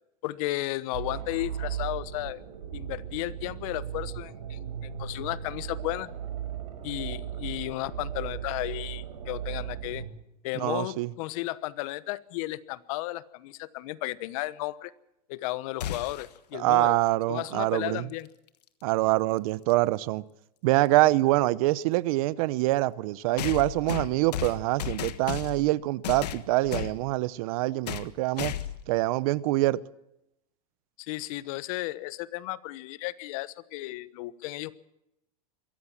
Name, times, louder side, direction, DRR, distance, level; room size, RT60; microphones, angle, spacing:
voice 1, 0.2-2.4 2.7-6.1 6.8-10.0 10.4-14.9 15.3-17.0 17.3-18.3 31.0-34.7, left 18 dB, 60° left, 1.1 m, -34 dB
sound 1, 0.9-10.1, right 9 dB, 90° right, 4.9 m, -37 dB
voice 2, 10.5-11.1 16.5-18.1 18.8-20.2 20.6-28.5 28.9-29.8, right 18 dB, 60° right, 0.9 m, -25 dB
sound 2, 15.8-16.4 18.5-18.6 19.7-19.8 23.4-25.7 26.0-27.0 27.9-28.1 28.4-28.9, left 11 dB, 85° left, 1.4 m, -34 dB
22.5 x 16.0 x 7.3 m
supercardioid pair, 125°, 20 cm